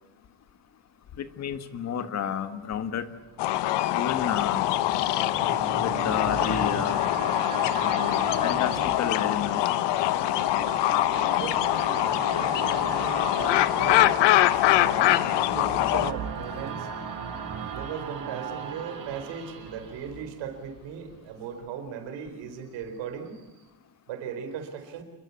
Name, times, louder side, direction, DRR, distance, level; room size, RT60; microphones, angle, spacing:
voice 1, 1.2-3.0 3.9-4.7 5.8-7.0 7.8-9.6, left 8 dB, 35° left, 10 dB, 1.6 m, -31 dB
sound 1, 3.1-20.9 21.3-21.4, right 6 dB, 45° right, 5.0 m, -38 dB
sound 2, 3.4-16.1, left 14 dB, 65° left, 1.2 m, -24 dB
voice 2, 11.3-14.2 14.7-15.1 15.5-16.9 17.7-23.4 24.1-25.0, right 7 dB, 70° right, 7 dB, 4.5 m, -38 dB
27.5 x 22.0 x 8.5 m, 1.0 s
cardioid pair, 175°, 45 cm